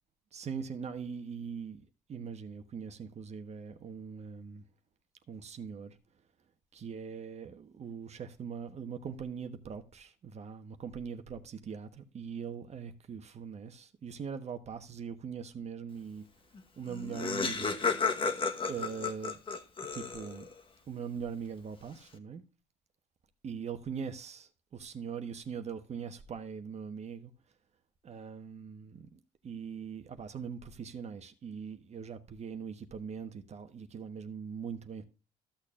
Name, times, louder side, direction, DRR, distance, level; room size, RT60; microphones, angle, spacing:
voice 1, 0.3-4.6 5.3-6.0 6.7-16.3 16.8-17.7 18.7-19.4 19.9-20.5 20.9-22.4 23.4-27.3 28.0-35.0, right 6 dB, 40° right, 1.2 m, -41 dB
Laughter, 16.6-16.7 16.9-20.5, left 4 dB, 30° left, 1.2 m, -33 dB
14.5 x 6.5 x 2.4 m
cardioid pair, 110°, 17 cm